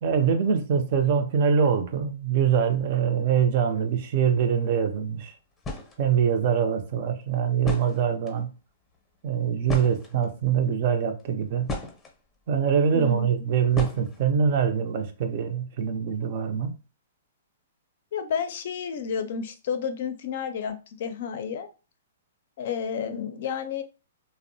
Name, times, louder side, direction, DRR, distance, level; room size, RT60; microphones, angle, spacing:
voice 1, 0.0-5.3 6.0-8.5 9.2-11.7 12.5-16.8, right 7 dB, 50° right, 0.5 m, -24 dB
sound 1, 5.3-5.4 5.6-6.0 7.2-7.3 7.6-8.4 9.7-10.5 11.2-12.1 13.7-14.4, left 2 dB, 15° left, 0.7 m, -33 dB
voice 2, 12.9-13.3 18.1-21.7 22.6-23.8, left 7 dB, 60° left, 0.4 m, -31 dB
2.6 x 2.0 x 2.6 m
hypercardioid pair, 130°, 0 cm